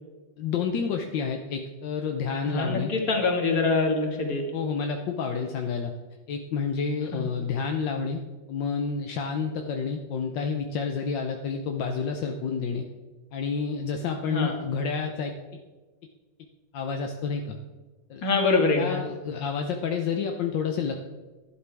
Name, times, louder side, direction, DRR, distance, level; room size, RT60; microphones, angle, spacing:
voice 1, 0.4-2.9 4.5-5.9 6.3-8.2 8.5-12.8 13.3-15.3 16.7-17.6 18.1-18.2 18.8-21.0, left 5 dB, 80° left, 3 dB, 1.5 m, -29 dB
voice 2, 2.4-4.5 7.1-7.2 14.2-14.6 18.2-19.0, left 3 dB, 50° left, 2 dB, 2.4 m, -24 dB
11.5 x 11.5 x 3.4 m, 1.3 s
omnidirectional pair, 2.0 m